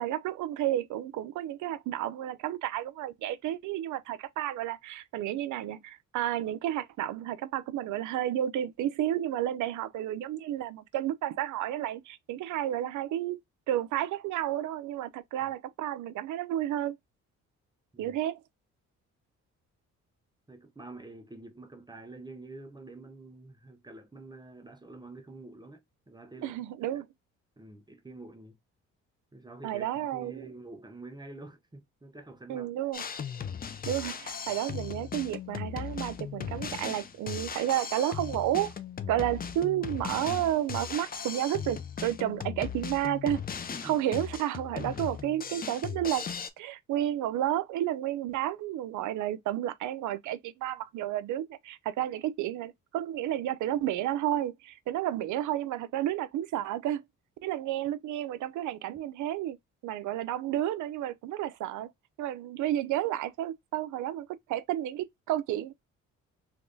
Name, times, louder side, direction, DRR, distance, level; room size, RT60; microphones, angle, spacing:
voice 1, 0.0-13.4 13.7-17.0 18.0-18.4 26.4-27.1 29.6-30.5 32.5-33.0 33.9-38.7 39.1-43.4 43.8-46.2 46.6-57.0 57.4-59.6 59.8-61.9 62.2-65.7, right 12 dB, 75° right, 0.5 m, -31 dB
voice 2, 20.5-26.6 27.6-28.6 29.3-32.7 43.7-44.0, right 2 dB, 15° right, 0.7 m, -47 dB
Drum kit, 32.9-46.5, left 7 dB, 30° left, 0.5 m, -38 dB
3.4 x 3.1 x 2.6 m
cardioid pair, 90°, 30 cm